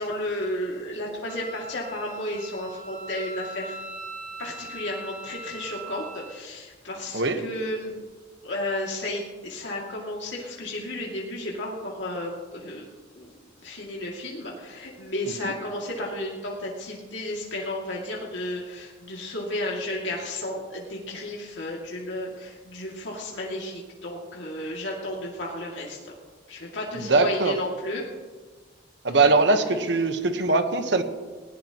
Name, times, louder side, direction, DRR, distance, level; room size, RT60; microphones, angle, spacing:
voice 1, 0.0-3.8 4.4-8.0 8.4-12.9 13.1-13.3 13.6-26.1 26.5-28.0 29.7-29.8, left 1 dB, 70° left, -3 dB, 2.5 m, -33 dB
Wind instrument woodwind instrument, 1.3-6.4, right 2 dB, 45° right, 3.4 m, -40 dB
voice 2, 26.9-27.5 29.0-31.0, right 3 dB, 65° right, 7 dB, 1.2 m, -21 dB
20.0 x 19.0 x 3.0 m, 1.4 s
head